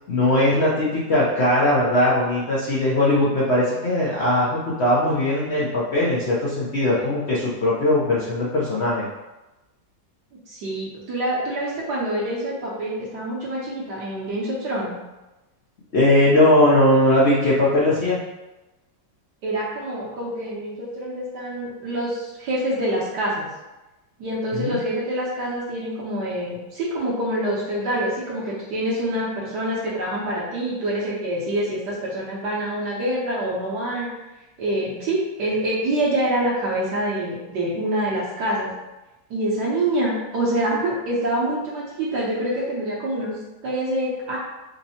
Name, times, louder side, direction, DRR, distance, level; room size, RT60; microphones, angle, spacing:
voice 1, 0.1-9.1 15.9-18.2 24.5-24.8, left 1 dB, 90° left, -6 dB, 0.5 m, -19 dB
voice 2, 10.5-14.9 19.4-23.5 24.2-34.3 34.6-38.7 39.3-44.4, right 1 dB, 70° right, -6 dB, 1.3 m, -26 dB
5.3 x 2.1 x 2.7 m, 1.0 s
omnidirectional pair, 2.0 m